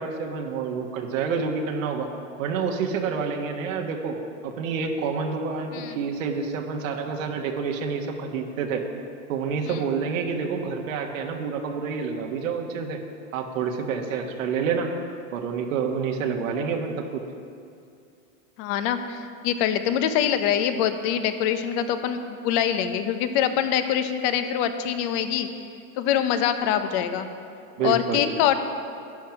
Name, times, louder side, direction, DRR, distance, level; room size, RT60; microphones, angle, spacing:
voice 1, 0.0-2.1 2.4-4.2 4.4-8.8 9.3-13.0 13.3-14.9 15.3-17.2 27.8-28.3, right 5 dB, 85° right, 2 dB, 1.6 m, -28 dB
voice 2, 18.6-25.5 26.0-27.3 27.8-28.6, left 9 dB, 55° left, 9 dB, 1.1 m, -24 dB
11.5 x 10.5 x 5.9 m, 2.4 s
supercardioid pair, 125°, 39 cm